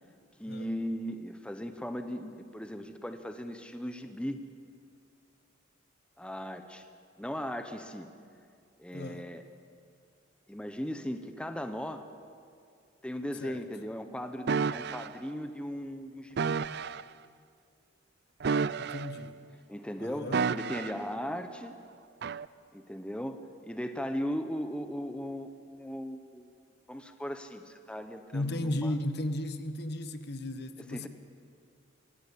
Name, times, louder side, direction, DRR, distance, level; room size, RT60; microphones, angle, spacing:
voice 1, 0.4-4.4 6.2-6.9 7.2-8.1 8.8-9.4 10.5-12.1 13.0-16.5 19.7-21.8 22.7-26.5 26.9-28.9 30.8-31.1, equal, 5° left, 8 dB, 0.8 m, -37 dB
voice 2, 8.9-9.3 13.4-13.6 18.8-19.4 20.0-20.5 28.3-31.1, left 1 dB, 55° left, 10 dB, 1.3 m, -35 dB
sound 1, 14.5-15.1 16.4-17.0 18.4-19.3 20.3-21.1 22.2-22.4, right 5 dB, 55° right, 0.4 m, -30 dB
24.0 x 17.0 x 8.4 m, 2.3 s
head